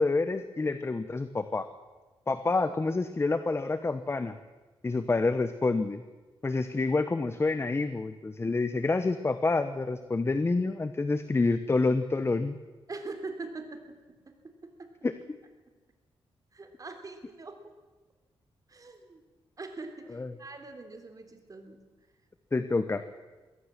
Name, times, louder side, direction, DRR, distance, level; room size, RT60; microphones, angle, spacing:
voice 1, 0.0-1.7 2.3-4.3 4.8-6.0 6.4-12.6 15.0-15.4 20.1-20.3 22.5-23.0, left 3 dB, 25° left, 11 dB, 1.0 m, -28 dB
voice 2, 12.9-14.9 16.5-17.6 18.7-19.2 19.6-21.8, right 3 dB, 35° right, 6 dB, 3.3 m, -43 dB
22.5 x 16.5 x 7.5 m, 1.2 s
wide cardioid pair, 105°, 10 cm